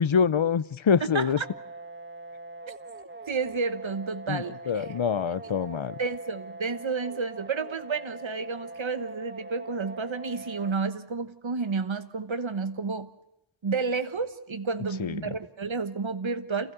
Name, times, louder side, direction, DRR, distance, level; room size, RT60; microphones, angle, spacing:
voice 1, 0.0-1.4 4.3-5.9 15.0-15.3, left 6 dB, 90° left, 17 dB, 0.8 m, -25 dB
voice 2, 1.0-1.4 3.3-4.9 6.0-13.1 13.6-16.7, right 4 dB, 80° right, 11 dB, 1.2 m, -31 dB
sound 1, 1.4-10.7, right 2 dB, 25° right, 1.5 m, -43 dB
28.5 x 16.0 x 7.9 m, 0.88 s
wide cardioid pair, 50°, 45 cm